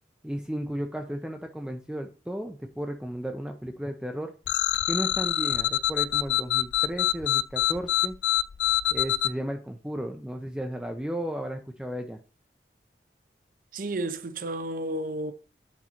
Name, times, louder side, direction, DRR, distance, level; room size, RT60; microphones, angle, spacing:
voice 1, 0.2-4.3 4.9-8.1 8.9-12.2, equal, 5° right, 0.5 m, -34 dB
sound 1, 4.5-9.3, left 13 dB, 70° left, 0.4 m, -25 dB
voice 2, 13.7-15.3, right 1 dB, 50° right, 0.7 m, -32 dB
8.6 x 4.0 x 4.4 m
head